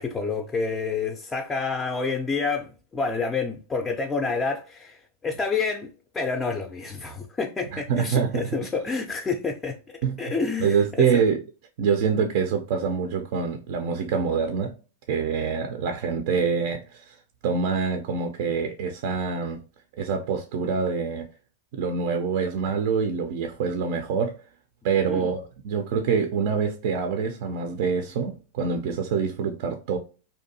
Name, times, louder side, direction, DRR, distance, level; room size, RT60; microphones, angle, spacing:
voice 1, 0.0-9.8 10.2-11.2 25.1-25.3, left 4 dB, 20° left, 0.4 m, -28 dB
voice 2, 7.7-8.5 10.0-10.2 10.6-11.4 11.8-14.7 15.1-17.2 17.4-19.6 20.0-21.3 21.7-24.3 24.8-30.0, right 6 dB, 60° right, 0.4 m, -25 dB
2.6 x 2.2 x 2.6 m
hypercardioid pair, 105°, 0 cm